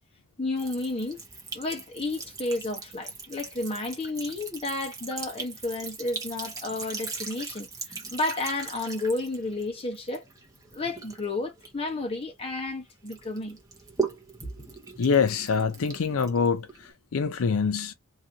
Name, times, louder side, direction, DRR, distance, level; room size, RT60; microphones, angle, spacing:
voice 1, 0.4-1.2 1.5-10.2 10.7-13.6 14.4-14.7, left 2 dB, 25° left, 1.1 m, -32 dB
Sink (filling or washing) / Trickle dribble, 0.6-12.7 13.1-16.9, right 5 dB, 15° right, 1.0 m, -39 dB
voice 2, 15.0-16.7 17.1-17.9, left 5 dB, 75° left, 0.5 m, -24 dB
3.0 x 2.7 x 3.8 m
head